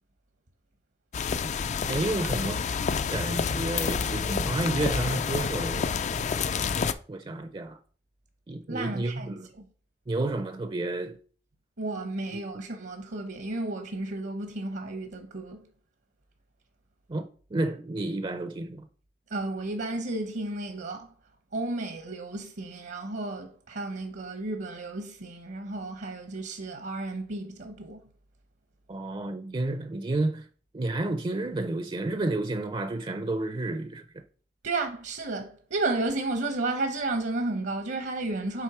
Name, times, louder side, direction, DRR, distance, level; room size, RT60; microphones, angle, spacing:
sound 1, 1.1-6.9, left 5 dB, 40° left, 0.3 m, -28 dB
voice 1, 1.9-2.6 3.1-5.9 7.1-7.8 8.5-9.5 10.1-11.2 12.3-12.6 17.1-18.9 28.9-30.5 30.7-34.0, right 2 dB, 30° right, 0.5 m, -31 dB
voice 2, 8.7-9.6 11.8-15.7 19.3-21.1 21.5-28.0 34.6-38.6, right 2 dB, 70° right, 0.8 m, -32 dB
7.5 x 3.6 x 4.8 m
head